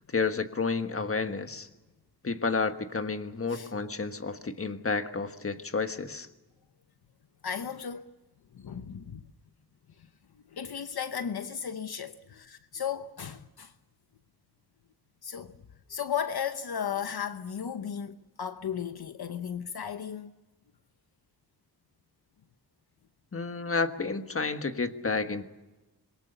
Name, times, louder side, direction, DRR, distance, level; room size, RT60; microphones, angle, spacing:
voice 1, 0.1-1.7 2.2-6.3 23.3-25.4, left 4 dB, 35° left, 1.5 m, -30 dB
voice 2, 7.4-8.0 8.5-9.3 10.0-10.1 10.3-13.7 15.2-15.6 15.9-20.3, left 8 dB, 65° left, 0.9 m, -35 dB
26.5 x 22.5 x 6.8 m
wide cardioid pair, 130°, 41 cm